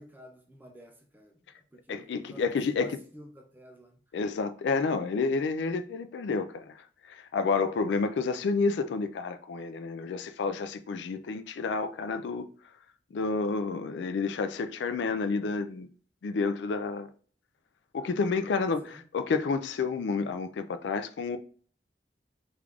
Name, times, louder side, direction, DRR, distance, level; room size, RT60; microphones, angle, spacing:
voice 1, 0.0-4.0 18.0-19.0, equal, 10° right, 0.5 m, -51 dB
voice 2, 1.9-3.0 4.1-6.7 7.1-12.5 13.1-15.9 16.2-17.1 17.9-21.4, left 4 dB, 85° left, 0.4 m, -30 dB
3.3 x 2.4 x 3.4 m
head